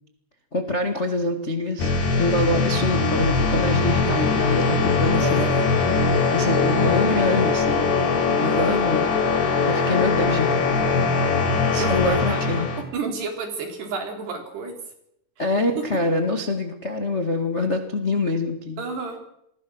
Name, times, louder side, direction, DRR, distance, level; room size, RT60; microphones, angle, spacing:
voice 1, 0.5-1.9 2.2-5.4 6.3-7.9 8.4-9.1 9.3-10.5 11.7-12.7 15.4-18.8, left 2 dB, 40° left, 5 dB, 0.9 m, -25 dB
sound 1, 1.8-12.8, left 4 dB, 75° left, 5.4 m, -21 dB
voice 2, 5.2-5.7 8.4-8.8 11.8-12.5 12.8-14.7 15.4-15.5 18.8-19.2, right 4 dB, 80° right, 4 dB, 5.8 m, -31 dB
28.0 x 20.5 x 6.3 m, 0.75 s
omnidirectional pair, 4.7 m